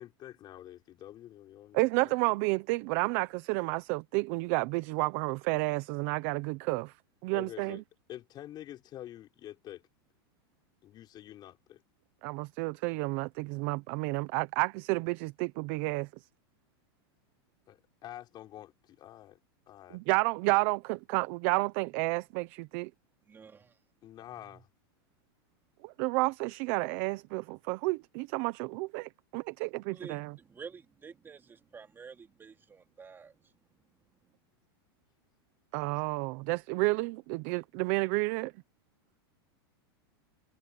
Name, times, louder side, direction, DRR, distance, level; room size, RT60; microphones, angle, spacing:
voice 1, 0.0-2.1 7.3-7.8 8.1-9.8 10.8-11.8 17.7-19.4 19.7-20.0 24.0-24.7, left 12 dB, 30° left, 5.8 m, -47 dB
voice 2, 1.7-6.9 7.2-7.8 12.2-16.1 19.9-22.9 25.8-30.3 35.7-38.5, right 24 dB, 50° right, 1.0 m, -31 dB
voice 3, 23.3-23.8 24.4-24.6 29.9-33.5, right 5 dB, 15° right, 2.7 m, -49 dB
supercardioid pair, 140°, 13 cm